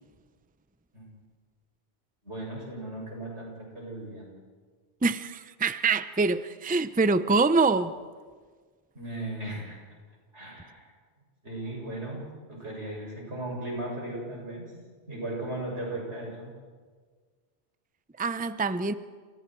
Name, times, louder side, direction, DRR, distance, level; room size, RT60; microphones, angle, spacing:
voice 1, 2.2-4.3 8.9-9.8 10.3-10.9 11.4-14.7 15.1-16.5, right 1 dB, 85° right, -2 dB, 8.2 m, -37 dB
voice 2, 5.0-7.9 18.2-18.9, right 3 dB, 10° right, 12 dB, 0.6 m, -25 dB
29.5 x 28.5 x 4.7 m, 1.5 s
omnidirectional pair, 1.1 m